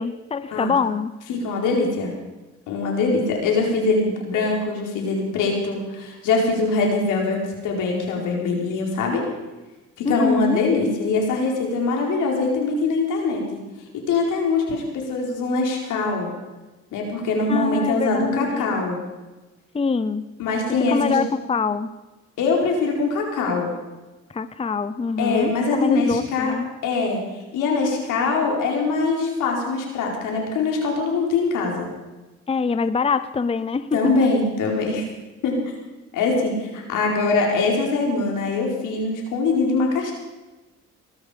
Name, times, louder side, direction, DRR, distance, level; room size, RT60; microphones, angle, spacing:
voice 1, 0.0-1.1 10.0-10.6 17.5-18.8 19.7-20.3 20.9-21.9 24.3-26.7 32.5-34.3, left 5 dB, 20° left, 13 dB, 0.7 m, -24 dB
voice 2, 1.3-2.1 2.7-9.2 10.0-13.6 13.9-16.3 16.9-19.0 20.4-21.2 22.4-23.7 25.2-26.5 26.8-27.2 27.5-31.9 33.9-35.1 35.4-35.6 36.1-40.1, left 3 dB, 85° left, 0 dB, 4.5 m, -23 dB
20.0 x 13.0 x 5.1 m, 1.1 s
cardioid pair, 90°, 30 cm